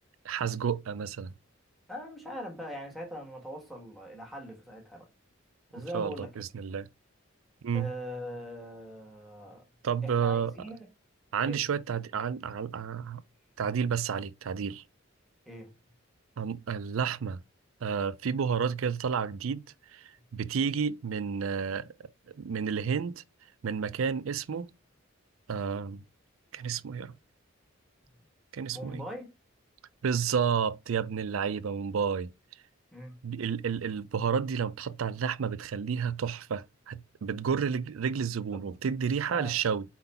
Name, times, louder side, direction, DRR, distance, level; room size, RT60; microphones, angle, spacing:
voice 1, 0.2-1.3 5.7-6.9 7.6-7.9 9.8-10.5 11.3-13.2 13.6-14.8 16.4-17.4 17.8-21.9 22.3-23.2 23.6-24.7 25.5-26.0 26.5-27.2 28.5-29.0 30.0-32.3 33.2-39.8, right 6 dB, 80° right, 0.4 m, -31 dB
voice 2, 1.9-5.1 5.7-6.3 7.7-9.6 10.0-10.9 11.4-11.6 14.1-14.2 15.4-15.7 28.7-29.3 32.9-33.1 38.5-38.7 39.3-39.6, equal, ahead, 1.5 m, -41 dB
4.5 x 3.9 x 5.6 m
head